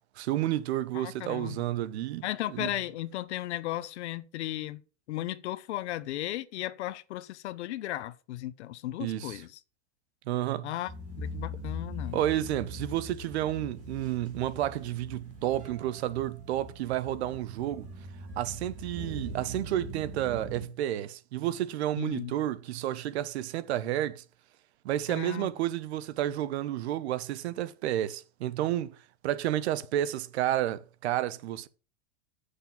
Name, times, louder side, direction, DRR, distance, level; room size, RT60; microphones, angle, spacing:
voice 1, 0.2-2.2 2.5-2.7 9.0-9.4 10.3-10.7 12.1-17.9 18.4-24.2 24.8-29.0 29.2-31.7, right 13 dB, 70° right, 1.0 m, -31 dB
voice 2, 0.9-1.6 2.2-4.8 5.1-9.5 10.6-10.9 11.2-12.2 22.0-22.3 25.1-25.5, left 15 dB, 80° left, 0.9 m, -35 dB
sound 1, 10.9-20.6, left 1 dB, 20° right, 2.7 m, -42 dB
7.8 x 6.7 x 7.1 m
supercardioid pair, 170°, 33 cm